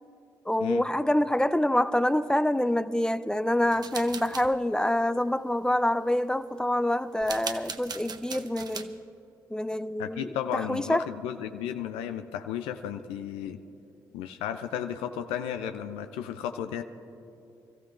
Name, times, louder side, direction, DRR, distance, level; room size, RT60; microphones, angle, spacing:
voice 1, 0.5-9.0 9.5-11.1, left 1 dB, 10° left, 13 dB, 0.5 m, -26 dB
sound 1, 3.7-4.5 7.2-8.8, right 5 dB, 45° right, 0.8 m, -38 dB
voice 2, 10.0-13.6 14.1-16.8, left 9 dB, 75° left, 8 dB, 0.5 m, -34 dB
25.5 x 14.5 x 2.6 m, 2.8 s
hypercardioid pair, 45°, 10 cm